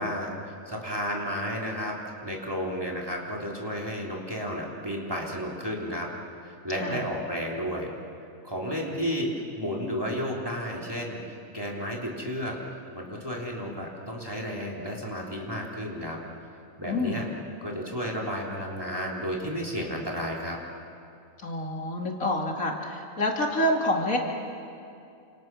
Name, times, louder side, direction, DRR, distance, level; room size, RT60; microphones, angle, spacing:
voice 1, 0.0-1.9 2.2-6.1 6.4-7.9 8.4-16.2 16.8-17.3 17.6-20.6, equal, 15° right, -3 dB, 3.7 m, -32 dB
voice 2, 16.9-17.3 21.4-24.2, left 1 dB, 80° left, 0 dB, 3.0 m, -27 dB
29.0 x 27.0 x 6.2 m, 2.5 s
omnidirectional pair, 1.4 m